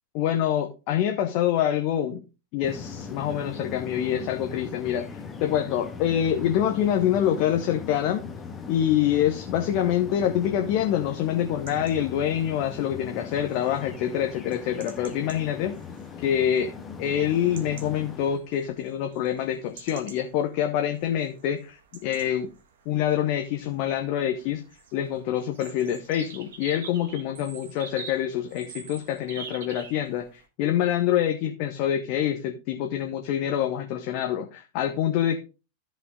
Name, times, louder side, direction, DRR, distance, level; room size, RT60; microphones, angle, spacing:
voice 1, 0.1-2.2 2.5-8.2 8.7-15.8 16.2-16.7 17.0-22.5 22.8-24.6 24.9-35.4, left 10 dB, 45° left, 5 dB, 1.1 m, -26 dB
sound 1, 2.6-18.4, left 5 dB, 15° left, 1.5 m, -39 dB
sound 2, 11.3-30.4, right 5 dB, 60° right, 1.7 m, -48 dB
13.5 x 5.7 x 3.8 m, 0.31 s
figure-of-eight pair, 90°, 0 cm